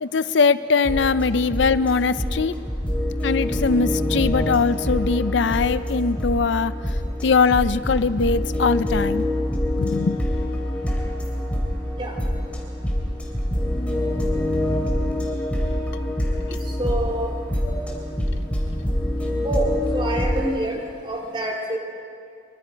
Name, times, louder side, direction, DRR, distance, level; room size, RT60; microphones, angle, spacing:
voice 1, 0.0-2.5 3.2-6.7 7.2-9.3 9.8-10.2, left 5 dB, 70° left, 14 dB, 0.5 m, -21 dB
sound 1, 0.8-20.4, left 1 dB, 5° left, 2.9 m, -25 dB
voice 2, 16.8-17.3 17.6-18.0 19.4-21.8, right 1 dB, 25° right, 0 dB, 3.0 m, -27 dB
24.0 x 23.0 x 5.1 m, 2.4 s
head